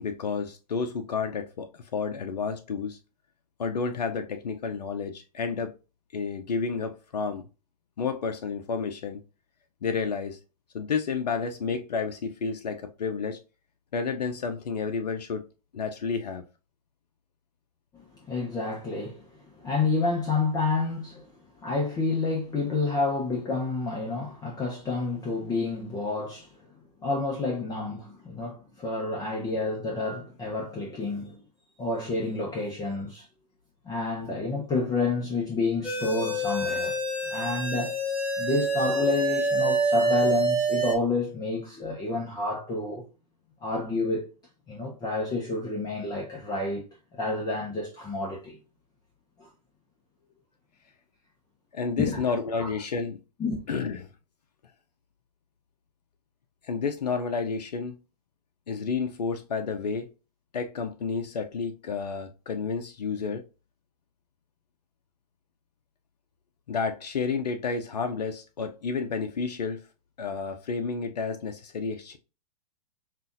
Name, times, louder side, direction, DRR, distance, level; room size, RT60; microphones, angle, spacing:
voice 1, 0.0-3.0 3.6-5.7 6.1-7.4 8.0-9.2 9.8-10.4 10.7-13.4 13.9-15.5 15.7-16.4 51.7-53.2 53.7-54.1 56.6-57.9 58.7-60.1 60.5-63.4 66.7-69.8 70.2-72.2, left 5 dB, 80° left, 0.5 m, -30 dB
voice 2, 17.9-21.3 21.6-26.5 27.0-31.4 31.8-33.3 33.8-37.0 37.3-37.9 38.4-43.0 43.6-44.3 44.7-46.8 47.1-48.6 49.4-49.5 52.0-52.2 52.5-52.7 53.4-53.6, left 3 dB, 20° left, 0.9 m, -29 dB
sound 1, 35.8-40.9, right 2 dB, 5° right, 1.2 m, -26 dB
5.5 x 2.5 x 2.5 m
hypercardioid pair, 110°, 21 cm